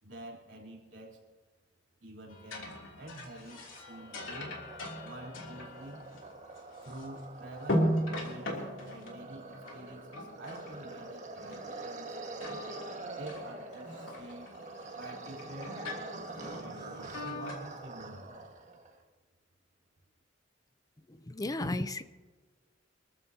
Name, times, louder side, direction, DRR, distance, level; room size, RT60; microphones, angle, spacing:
voice 1, 0.0-1.2 2.0-2.7 3.0-4.6 5.0-6.0 6.8-12.6 13.1-14.5 14.9-15.8 16.6-18.4, right 1 dB, 65° right, -2 dB, 3.6 m, -48 dB
sound 1, 2.3-7.2 7.6-11.1 11.4-12.1 12.4-17.5, equal, 90° left, 3.0 m, -38 dB
sound 2, 3.3-19.0, right 2 dB, 40° right, 1.8 m, -45 dB
voice 2, 21.3-22.0, left 2 dB, 20° left, 11 dB, 0.6 m, -33 dB
24.5 x 14.0 x 2.8 m, 1.3 s
head